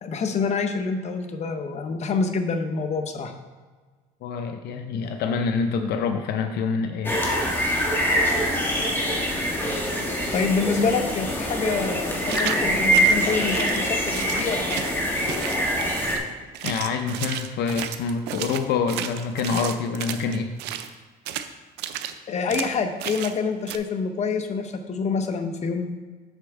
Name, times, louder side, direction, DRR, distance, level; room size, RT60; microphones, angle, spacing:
voice 1, 0.0-3.3 10.3-14.8 22.3-25.9, left 4 dB, 40° left, 7 dB, 0.8 m, -26 dB
voice 2, 4.2-7.2 16.6-20.6, left 5 dB, 75° left, 6 dB, 0.5 m, -26 dB
sound 1, 7.0-16.2, equal, 10° left, 1.5 m, -24 dB
sound 2, 12.3-12.6 12.9-15.0 15.3-16.2 16.5-20.9 21.3-21.5 21.8-22.1 22.5-22.7 23.0-23.4 23.7-23.8, right 11 dB, 85° right, 0.5 m, -33 dB
8.1 x 6.0 x 3.5 m, 1.4 s
cardioid pair, 110°, 17 cm